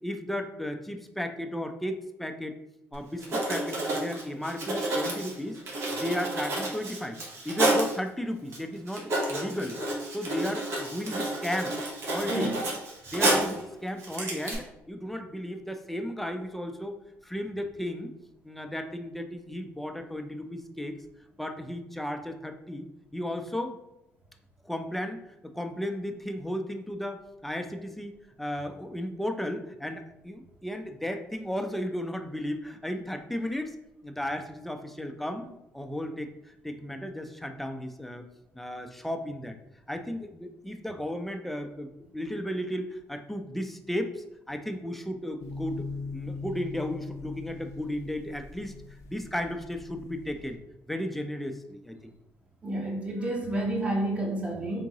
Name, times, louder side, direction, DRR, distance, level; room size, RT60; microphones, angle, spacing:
voice 1, 0.0-2.6 2.9-5.6 6.0-7.2 7.4-9.8 10.1-11.8 12.0-12.5 13.1-17.0 17.2-18.1 18.4-21.0 21.4-22.9 23.1-23.8 24.6-25.2 25.4-33.7 34.0-38.3 38.5-39.6 39.9-45.9 46.1-48.7 49.1-50.6 50.9-52.1, left 1 dB, 5° left, 6 dB, 0.4 m, -34 dB
Writing, 2.9-3.0 3.2-8.0 8.5-8.6 8.9-13.6 14.0-14.5, right 1 dB, 60° right, 1.2 m, -30 dB
sound 1, 45.4-50.6, left 3 dB, 70° left, 0.5 m, -40 dB
voice 2, 52.6-54.8, right 1 dB, 20° right, 0 dB, 1.0 m, -30 dB
3.7 x 3.6 x 2.9 m, 0.88 s
cardioid pair, 100°, 5 cm